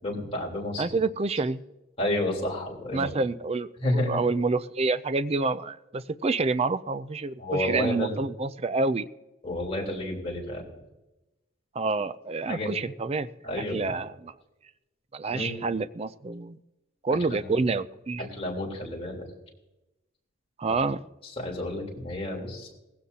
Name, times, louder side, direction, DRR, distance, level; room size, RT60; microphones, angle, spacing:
voice 1, 0.0-0.8 2.0-3.1 3.8-4.2 7.4-8.1 9.4-10.7 12.5-12.7 13.4-14.0 15.3-15.7 17.3-17.5 18.2-19.2 20.6-20.8 21.2-22.7, left 1 dB, 30° left, -3 dB, 3.7 m, -31 dB
voice 2, 0.8-1.6 2.9-9.1 11.7-13.3 13.7-14.3 15.1-16.6 17.0-18.3 20.6-21.0, right 3 dB, 30° right, 15 dB, 0.4 m, -28 dB
18.5 x 16.0 x 2.8 m, 0.98 s
head